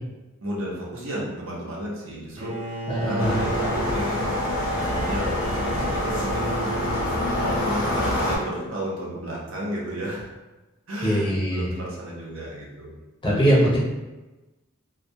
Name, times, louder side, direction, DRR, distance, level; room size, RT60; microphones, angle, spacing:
voice 1, 0.4-2.8 3.0-10.3 10.9-12.9, equal, 65° right, -4 dB, 0.7 m, -33 dB
Bowed string instrument, 2.4-8.5, right 2 dB, 30° right, 0.4 m, -34 dB
voice 2, 2.9-3.4 11.0-11.6 13.2-13.8, equal, 25° left, -6 dB, 0.5 m, -21 dB
sound 1, 3.2-8.4, left 1 dB, 70° left, 0.7 m, -26 dB
2.2 x 2.2 x 2.7 m, 1.1 s
head